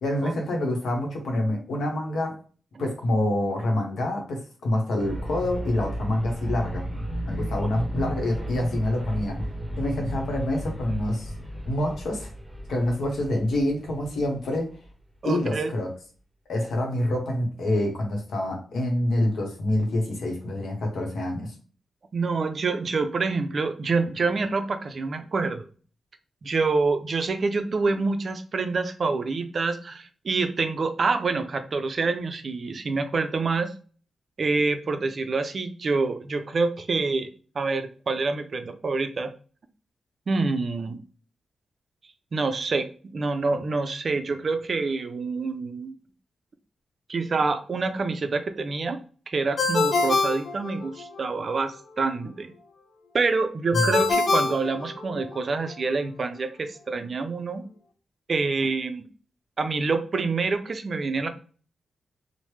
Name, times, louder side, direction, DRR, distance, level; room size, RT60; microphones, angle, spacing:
voice 1, 0.0-2.4 2.8-6.9 7.2-9.4 9.8-11.3 11.6-12.3 12.7-14.7 15.2-15.9 16.5-21.5 53.7-54.0, left 1 dB, 85° left, 1 dB, 0.9 m, -26 dB
sound 1, 5.0-14.9, equal, ahead, 0.7 m, -34 dB
voice 2, 15.2-15.7 22.1-25.6 26.4-33.7 34.4-37.3 37.6-39.3 40.3-41.0 42.3-42.9 43.1-45.9 47.1-49.0 49.3-52.5 53.1-57.6 58.3-59.0 59.6-61.3, right 4 dB, 40° right, 8 dB, 0.3 m, -26 dB
Ringtone, 49.6-51.2 53.7-55.4, left 3 dB, 50° left, 0.4 m, -25 dB
3.1 x 2.0 x 3.1 m, 0.40 s
wide cardioid pair, 165°, 0 cm